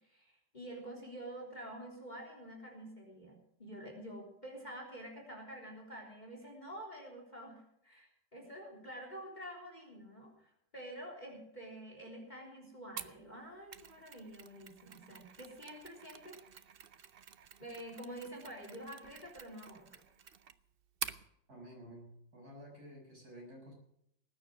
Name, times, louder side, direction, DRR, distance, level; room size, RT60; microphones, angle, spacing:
voice 1, 0.0-16.4 17.6-20.0, right 1 dB, 20° left, 2 dB, 3.7 m, -48 dB
Mechanisms, 13.0-21.3, right 7 dB, 70° right, 0.5 m, -49 dB
voice 2, 21.5-23.7, equal, 50° right, 0 dB, 7.2 m, -52 dB
19.5 x 9.7 x 6.2 m, 0.75 s
omnidirectional pair, 2.1 m